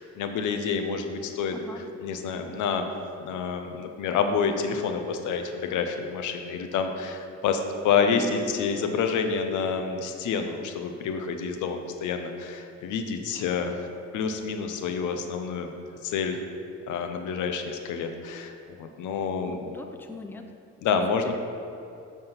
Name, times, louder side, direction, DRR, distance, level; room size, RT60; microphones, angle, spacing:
voice 1, 0.0-1.5 2.0-2.9 3.2-13.8 14.1-15.7 16.0-16.4 16.9-19.7 20.8-21.3, left 6 dB, 80° left, 6 dB, 0.7 m, -28 dB
voice 2, 1.5-1.8 8.0-8.7 19.5-20.5 20.8-21.3, left 3 dB, 5° left, 5 dB, 0.5 m, -41 dB
7.9 x 3.6 x 5.7 m, 2.8 s
cardioid pair, 90°, 30 cm